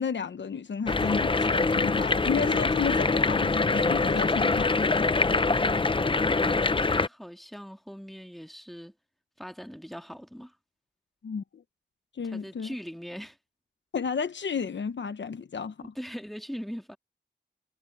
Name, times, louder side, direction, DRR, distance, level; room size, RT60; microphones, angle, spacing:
voice 1, 0.0-5.1 11.2-11.6 12.1-12.7 13.9-15.9, left 6 dB, 85° left, 1.0 m, -32 dB
sound 1, 0.9-7.1, left 3 dB, 30° left, 0.6 m, -24 dB
voice 2, 6.5-8.9 9.4-10.5 12.2-13.4 15.8-17.0, equal, ahead, 1.9 m, -41 dB
wide cardioid pair, 75°, 18 cm